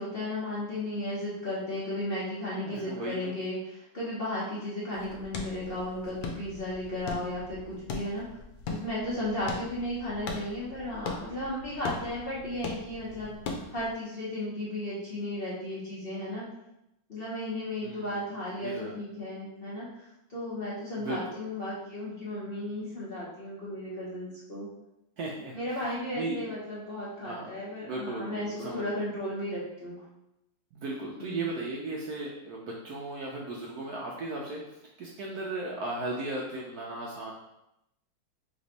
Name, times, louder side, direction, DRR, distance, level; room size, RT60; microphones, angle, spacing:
voice 1, 0.0-3.6 3.9-8.3 8.7-16.5 17.1-19.9 20.3-24.7 25.5-30.0 31.2-31.4, left 1 dB, 40° left, -9 dB, 0.8 m, -34 dB
voice 2, 2.7-3.3 17.8-18.3 18.6-19.0 20.9-21.2 25.2-26.4 27.2-27.5 27.8-29.0 30.7-34.6 35.0-37.3, right 2 dB, 70° right, -2 dB, 1.0 m, -36 dB
sound 1, 4.9-13.9, left 3 dB, 85° left, 1.4 m, -40 dB
3.4 x 3.1 x 3.9 m, 0.87 s
omnidirectional pair, 2.1 m